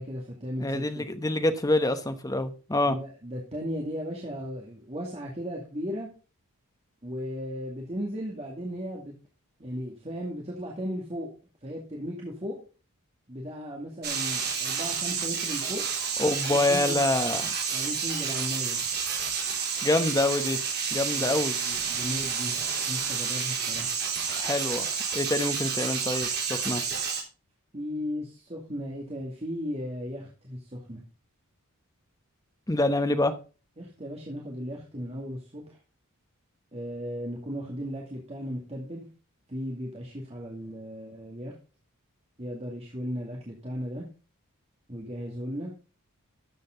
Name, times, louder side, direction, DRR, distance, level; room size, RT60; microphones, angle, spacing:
voice 1, 0.0-1.1 2.8-6.1 7.0-9.2 9.6-11.3 11.6-12.6 13.3-15.8 16.4-17.0 17.7-18.8 21.1-22.5 22.9-23.9 27.7-31.0 33.8-35.8 36.7-39.1 39.5-41.5 42.4-44.1 44.9-45.7, equal, 30° right, 2.2 m, -36 dB
voice 2, 0.6-3.0 16.2-17.5 19.8-20.6 20.9-21.6 24.4-26.8 32.7-33.3, left 2 dB, 15° left, 1.0 m, -26 dB
sound 1, 14.0-27.2, right 6 dB, 45° right, 3.4 m, -30 dB
12.5 x 7.7 x 3.8 m
head